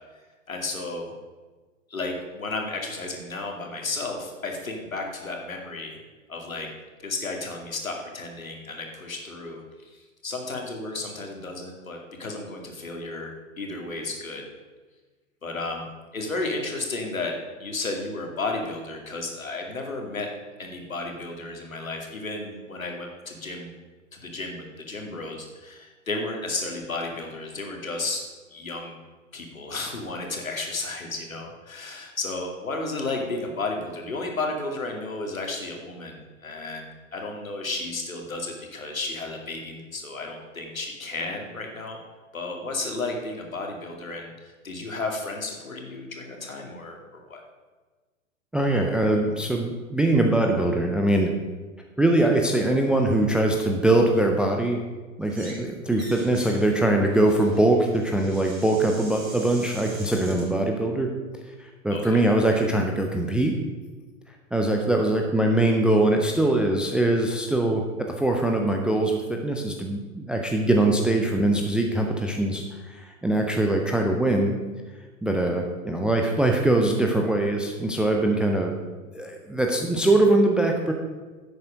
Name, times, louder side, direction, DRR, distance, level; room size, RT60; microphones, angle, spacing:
voice 1, 0.5-1.1 1.9-6.0 6.3-6.7 7.0-9.6 9.9-14.4 15.4-15.9 16.1-20.3 20.6-23.7 24.1-29.0 29.3-42.0 42.3-47.4 61.9-62.3, left 3 dB, 85° left, 2 dB, 2.4 m, -33 dB
voice 2, 48.5-51.3 52.0-54.8 55.2-61.1 61.8-63.5 64.5-67.8 68.2-74.5 75.2-78.7 79.1-80.9, right 1 dB, 5° right, 2 dB, 0.3 m, -22 dB
sound 1, 55.2-55.6 55.9-60.5, right 2 dB, 85° right, 4.0 m, -44 dB
11.0 x 8.0 x 5.1 m, 1.3 s
figure-of-eight pair, 105°, 40 cm